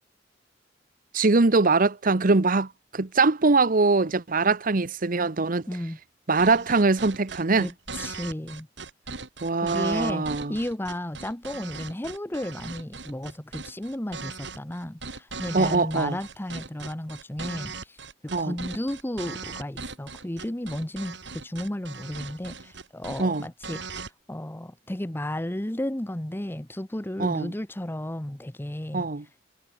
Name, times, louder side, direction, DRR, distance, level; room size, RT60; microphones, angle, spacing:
voice 1, 1.1-5.6 6.3-7.7 9.4-10.6 15.5-16.2 18.3-18.5 23.2-23.5 27.2-27.5 28.9-29.2, right 3 dB, 50° right, 0.9 m, -22 dB
voice 2, 5.7-6.0 7.6-8.7 9.5-18.0 18.4-29.1, left 1 dB, 10° left, 0.9 m, -33 dB
sound 1, 6.4-24.1, right 4 dB, 70° right, 6.9 m, -39 dB
head